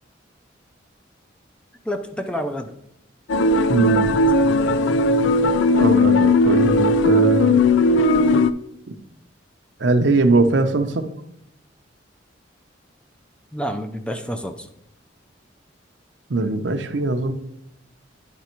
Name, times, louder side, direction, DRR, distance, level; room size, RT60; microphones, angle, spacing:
voice 1, 1.8-2.7 4.3-4.7 13.5-14.7, equal, 5° left, 6 dB, 0.4 m, -29 dB
sound 1, 3.3-8.5, left 2 dB, 80° left, 0.4 m, -17 dB
voice 2, 3.7-4.1 5.8-7.6 9.8-11.1 16.3-17.3, right 2 dB, 70° right, 8 dB, 0.7 m, -20 dB
10.0 x 3.4 x 4.4 m, 0.79 s
head